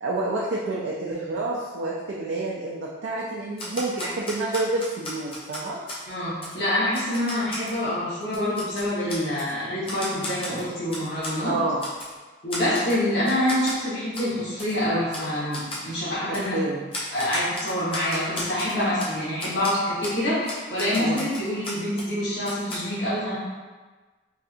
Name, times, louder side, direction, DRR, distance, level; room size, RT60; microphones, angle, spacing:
voice 1, 0.0-5.8 11.5-11.8 16.5-16.8 21.0-21.2, right 2 dB, 80° right, -4 dB, 0.4 m, -28 dB
Typewriter, 3.6-6.0 6.4-6.6 6.9-7.8 8.2-9.5 9.9-11.4 11.8-12.1 12.5-13.0 13.3-13.8 14.1-14.3 14.6-14.7 15.1-15.3 15.5-15.9 16.3-16.5 16.9-19.1 19.4-19.7 20.0-20.2 20.5-22.1 22.4-22.8, left 1 dB, 30° left, 0.6 m, -35 dB
voice 2, 6.1-11.5 12.4-16.6 17.1-23.4, left 1 dB, 65° left, -9 dB, 1.3 m, -26 dB
3.2 x 2.7 x 2.5 m, 1.3 s
head